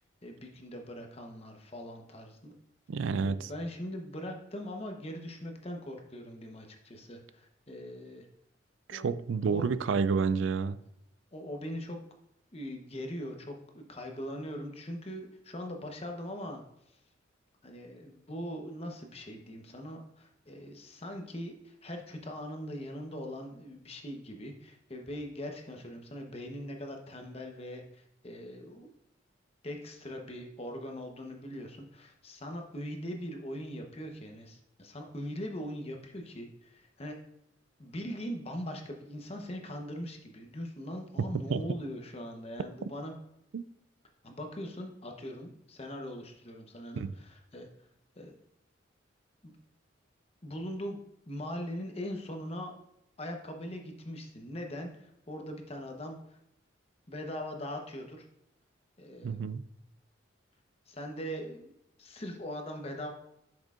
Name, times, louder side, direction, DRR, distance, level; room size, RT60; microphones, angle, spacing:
voice 1, 0.0-2.5 3.2-8.3 8.9-9.1 9.5-9.7 11.3-12.0 12.5-16.6 17.6-28.9 29.6-37.2 37.8-43.1 44.2-47.7 48.2-48.3 49.4-49.5 50.4-51.0 51.3-52.7 53.2-56.4 57.1-58.3 59.0-59.4 60.9-61.7 62.0-63.1, equal, 30° left, 0.9 m, -41 dB
voice 2, 2.9-3.5 8.9-10.8 41.5-41.6 43.5-43.6 47.0-47.1 59.2-59.6, right 5 dB, 75° right, 0.4 m, -29 dB
8.2 x 6.4 x 2.4 m
head